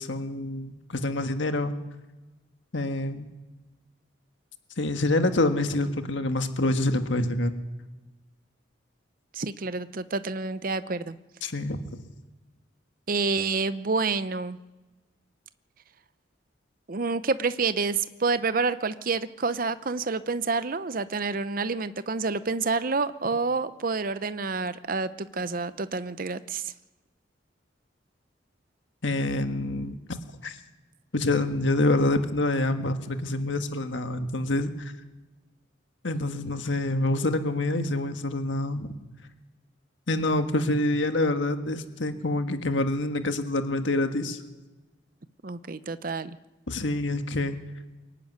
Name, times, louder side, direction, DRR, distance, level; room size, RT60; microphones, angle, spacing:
voice 1, 0.0-1.7 2.7-3.3 4.8-7.5 11.4-11.8 29.0-30.6 31.1-34.9 36.0-38.9 40.1-44.4 46.7-47.6, left 2 dB, 70° left, 7 dB, 1.5 m, -26 dB
voice 2, 9.3-11.2 13.1-14.6 16.9-26.7 45.4-46.4, right 4 dB, 45° right, 13 dB, 0.7 m, -28 dB
23.0 x 12.0 x 9.5 m, 1.1 s
head